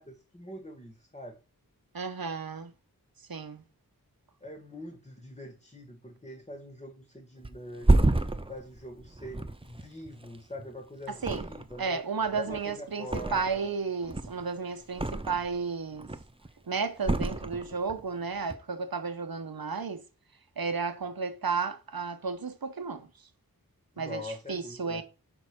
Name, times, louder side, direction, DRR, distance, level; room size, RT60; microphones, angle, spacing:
voice 1, 0.0-1.4 4.4-12.0 12.3-13.7 14.7-14.8 23.9-25.0, left 1 dB, 20° left, 1.7 m, -44 dB
voice 2, 1.9-2.7 3.3-3.6 11.1-11.4 11.8-16.1 16.7-20.0 20.6-23.1 24.0-25.0, right 5 dB, 80° right, 1.0 m, -33 dB
Thump thud, 7.4-10.7 11.2-11.9 12.2-13.7 14.0-15.6 15.9-16.5 17.0-18.0 18.3-18.5, right 2 dB, 15° right, 0.7 m, -29 dB
4.9 x 4.5 x 6.1 m
wide cardioid pair, 45°, 35 cm